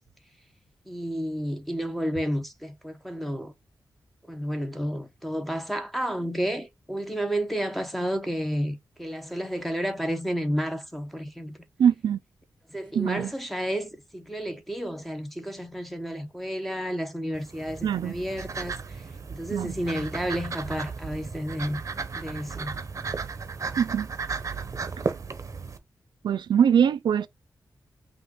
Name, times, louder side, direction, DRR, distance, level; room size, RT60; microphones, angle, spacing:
voice 1, 0.9-3.5 4.3-11.5 12.7-19.0 19.3-21.8 22.1-22.8, equal, ahead, 1.0 m, -31 dB
voice 2, 11.8-12.2 13.0-13.3 17.8-18.1 19.5-19.7 23.8-24.1 26.2-27.3, right 8 dB, 80° right, 0.4 m, -22 dB
sound 1, 17.3-25.8, right 5 dB, 45° right, 0.9 m, -35 dB
5.5 x 2.5 x 3.7 m
wide cardioid pair, 115°, 8 cm